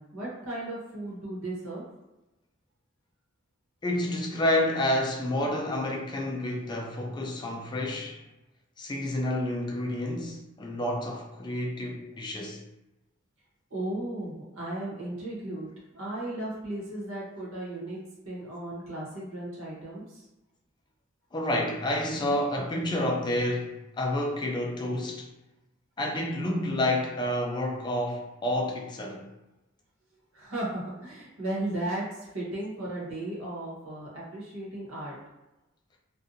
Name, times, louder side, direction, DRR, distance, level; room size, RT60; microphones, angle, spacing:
voice 1, 0.0-1.8 13.7-18.0 18.2-20.2 22.1-22.2 30.3-35.2, right 1 dB, 85° right, 1.1 m, -35 dB
voice 2, 3.8-8.2 8.8-12.6 21.3-25.3 26.0-29.2, left 1 dB, 20° left, 0.4 m, -29 dB
2.6 x 2.3 x 2.6 m
head